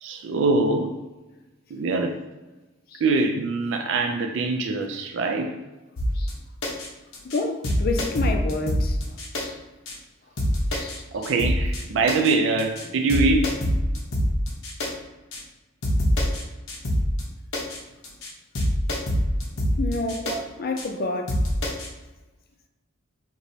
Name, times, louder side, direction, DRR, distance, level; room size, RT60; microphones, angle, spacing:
voice 1, 0.0-1.0 1.7-2.2 3.0-5.5 10.7-13.6 20.2-20.4 21.0-21.1, right 3 dB, 60° right, 0.3 m, -24 dB
sound 1, 6.0-6.3 6.6-6.9 7.1-7.4 7.6-9.4 9.9-10.0 10.4-11.0 11.2-11.8 12.1-12.3 12.6-12.8 13.1-14.9 15.3-15.4 15.8-16.4 16.7-17.2 17.5-17.8 18.0-18.3 18.6-20.4 20.8-20.9 21.3-21.9, equal, 80° left, 0.8 m, -25 dB
voice 2, 7.2-9.0 9.4-9.6 10.8-11.0 19.8-20.3 20.6-21.4, left 2 dB, 45° left, 0.4 m, -28 dB
5.3 x 3.0 x 2.7 m
head